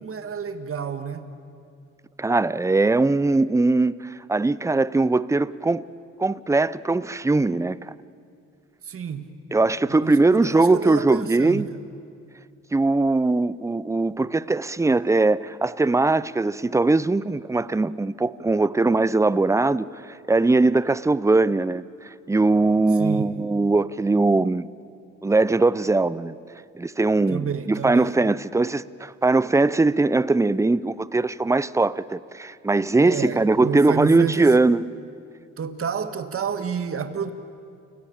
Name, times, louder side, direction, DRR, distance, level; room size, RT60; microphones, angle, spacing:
voice 1, 0.0-1.3 8.8-9.2 9.9-11.7 23.0-23.3 27.3-28.1 33.0-34.6 35.6-37.3, right 6 dB, 45° right, 1.8 m, -30 dB
voice 2, 2.2-5.8 6.2-7.9 9.5-11.7 12.7-24.7 25.2-26.4 26.8-34.8, right 3 dB, 10° right, 0.5 m, -21 dB
29.5 x 16.0 x 8.8 m
cardioid pair, 90°, 30 cm